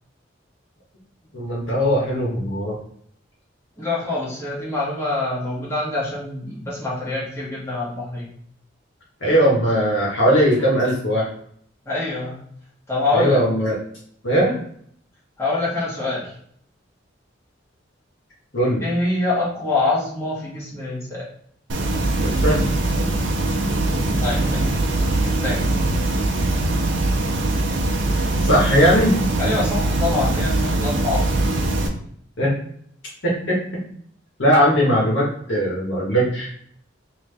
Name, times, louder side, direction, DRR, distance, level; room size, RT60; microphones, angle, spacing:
voice 1, 1.3-2.7 9.2-11.2 13.1-13.8 14.2-14.6 18.5-18.8 22.2-22.7 28.4-29.2 32.4-32.5 33.2-33.6 34.4-36.5, equal, 65° left, -5 dB, 1.5 m, -19 dB
voice 2, 3.8-8.3 11.8-12.4 12.9-13.4 15.4-16.3 18.8-21.3 24.2-24.7 25.1-25.6 29.4-31.4, left 2 dB, 15° left, -8 dB, 1.5 m, -25 dB
sound 1, 21.7-31.9, right 2 dB, 65° right, 0.6 m, -21 dB
3.5 x 3.0 x 3.4 m, 0.64 s
head